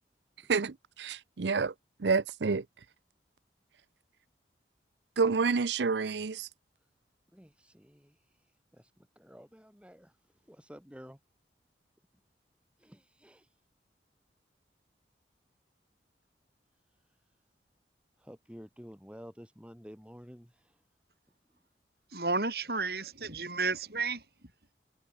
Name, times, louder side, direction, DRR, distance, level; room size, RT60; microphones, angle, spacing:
voice 1, 0.5-1.7 2.0-2.6 5.2-6.5, right 4 dB, 75° right, 0.6 m, -28 dB
voice 2, 7.3-11.2 12.8-13.6 16.9-17.3 18.2-20.8 21.5-21.6, equal, 5° right, 3.6 m, -52 dB
voice 3, 22.1-24.2, right 3 dB, 60° right, 5.6 m, -32 dB
head